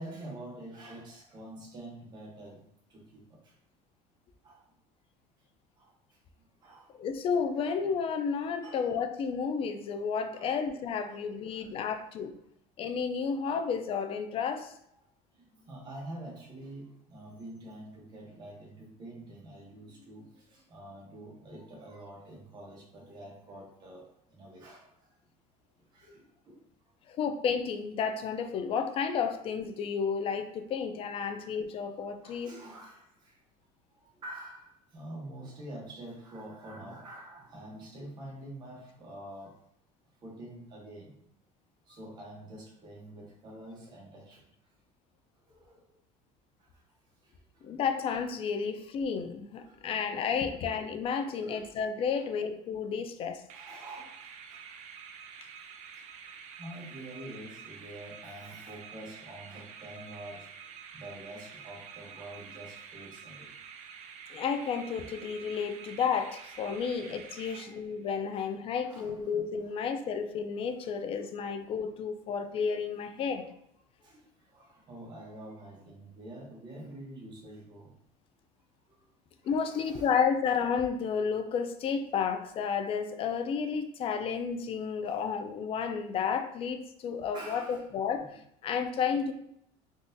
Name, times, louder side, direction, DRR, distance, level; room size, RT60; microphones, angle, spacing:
voice 1, 0.0-2.6 2.9-3.5 4.4-4.7 5.8-6.9 8.6-8.9 10.3-10.6 11.1-11.9 13.5-13.6 15.3-25.2 25.8-27.1 32.2-33.4 33.9-39.5 40.2-41.1 41.8-44.7 45.4-45.9 46.6-46.8 47.2-47.8 49.6-50.1 51.4-51.7 52.2-52.3 53.4-54.6 56.0-56.1 56.6-60.6 60.9-63.5 67.4-67.8 68.7-69.2 74.0-78.0 78.9-79.1 79.4-80.2 85.0-85.2 87.3-87.8 88.2-88.3, right 1 dB, 30° right, -3 dB, 0.9 m, -47 dB
voice 2, 6.9-12.3 12.8-14.7 27.1-32.5 47.6-53.4 64.3-73.4 79.4-88.3 88.6-89.3, left 6 dB, 40° left, 7 dB, 0.4 m, -31 dB
sound 1, 53.5-68.1, right 7 dB, 50° right, 0.4 m, -48 dB
3.7 x 2.4 x 2.6 m, 0.74 s
cardioid pair, 135°, 15 cm